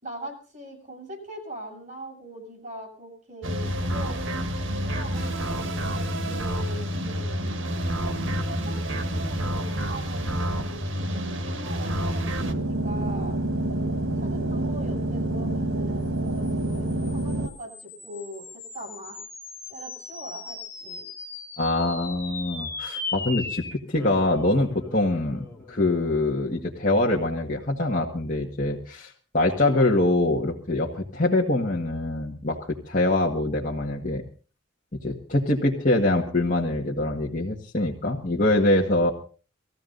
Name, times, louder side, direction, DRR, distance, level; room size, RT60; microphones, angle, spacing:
voice 1, 0.0-4.2 4.8-7.2 8.5-12.2 12.7-13.4 14.2-19.2 19.7-21.1 29.6-29.9, equal, 40° right, 1 dB, 7.6 m, -41 dB
sound 1, 3.4-12.5, equal, 70° right, 1.7 m, -28 dB
sound 2, 12.4-17.5, right 1 dB, 85° right, 1.4 m, -27 dB
sound 3, 16.5-27.2, left 3 dB, 15° left, 2.2 m, -39 dB
voice 2, 21.6-32.6 32.9-34.2 35.0-39.1, left 2 dB, 40° left, -2 dB, 1.8 m, -24 dB
20.5 x 14.5 x 4.0 m, 0.39 s
head